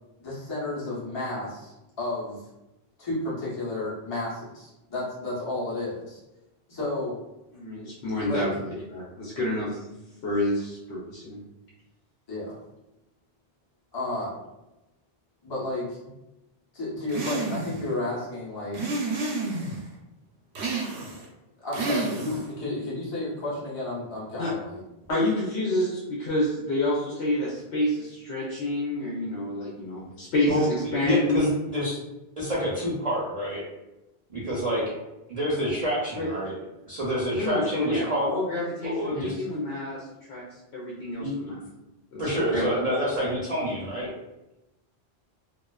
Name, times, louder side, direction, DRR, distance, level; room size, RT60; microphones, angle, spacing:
voice 1, 0.2-2.4 3.0-6.2 6.7-7.1 8.2-8.5 12.3-12.6 13.9-14.4 15.4-16.1 16.7-18.8 21.6-24.8, left 2 dB, 30° left, -8 dB, 0.6 m, -32 dB
voice 2, 7.5-9.8 10.2-11.4 24.4-24.5 25.1-31.6 36.2-36.3 37.3-40.4 40.7-41.6 42.1-42.7, left 1 dB, 90° left, -6 dB, 0.9 m, -28 dB
sound 1, 17.1-17.8 18.7-19.8 20.5-21.3 21.7-22.5, right 3 dB, 80° right, 0.8 m, -30 dB
voice 3, 31.0-32.0 32.4-33.6 34.3-34.8 35.3-36.6 36.9-38.3 38.8-39.4 41.2-41.3 42.2-44.1, equal, 45° right, -7 dB, 0.5 m, -27 dB
2.4 x 2.3 x 2.2 m, 0.96 s
omnidirectional pair, 1.1 m